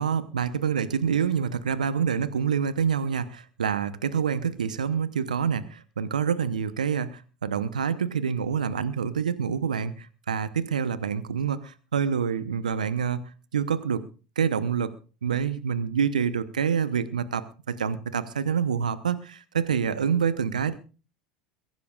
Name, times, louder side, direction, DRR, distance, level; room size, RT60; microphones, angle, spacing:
voice 1, 0.0-13.2 13.5-14.0 14.4-14.9 15.2-20.8, right 7 dB, 80° right, 14 dB, 0.9 m, -27 dB
22.5 x 16.0 x 2.4 m, 0.36 s
hypercardioid pair, 80°, 4 cm